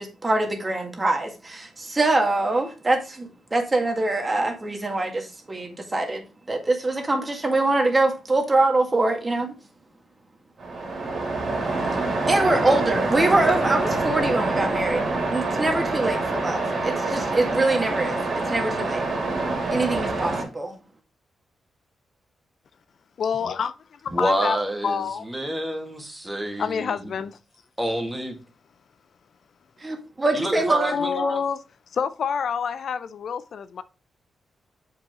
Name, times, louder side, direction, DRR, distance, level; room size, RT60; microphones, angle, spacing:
voice 1, 0.0-9.5 12.3-15.0 15.3-18.2 18.5-19.0 19.7-20.7 29.8-30.9, right 2 dB, 25° right, 2.0 m, -24 dB
Waves surf, 10.6-20.4, right 3 dB, 60° right, 2.8 m, -26 dB
voice 2, 23.2-24.6 24.8-25.2 26.6-27.4 30.9-31.6 31.9-33.8, left 6 dB, 65° left, 0.4 m, -27 dB
voice 3, 24.1-27.1 27.8-28.4 30.3-31.4, equal, 10° right, 2.0 m, -28 dB
7.0 x 5.4 x 3.7 m
cardioid pair, 100°, 0 cm